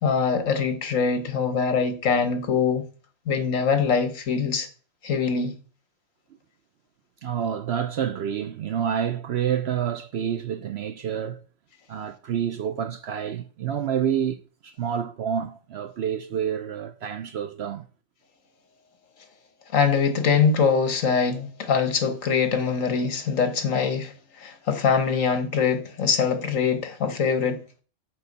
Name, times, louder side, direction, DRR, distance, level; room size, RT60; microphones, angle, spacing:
voice 1, 0.0-2.9 3.3-4.7 5.0-5.5 19.7-27.6, left 6 dB, 70° left, 1.5 m, -23 dB
voice 2, 7.2-11.4 11.9-17.9, right 8 dB, 65° right, 0.7 m, -28 dB
7.0 x 6.3 x 5.3 m
omnidirectional pair, 1.4 m